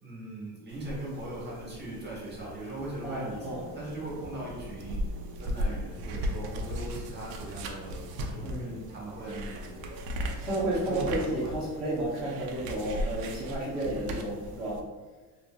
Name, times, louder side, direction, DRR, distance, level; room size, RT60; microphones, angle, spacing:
voice 1, 0.0-5.0 5.4-10.0 10.7-11.5, right 1 dB, 25° right, -5 dB, 0.9 m, -40 dB
sound 1, 0.7-14.8, equal, 55° right, 0.5 m, -37 dB
voice 2, 3.0-3.6 8.4-8.8 10.4-14.8, right 1 dB, ahead, -12 dB, 0.6 m, -32 dB
sound 2, 3.1-10.3, right 1 dB, 80° left, 1.0 m, -51 dB
2.6 x 2.6 x 2.3 m, 1.3 s
cardioid pair, 130°, 45 cm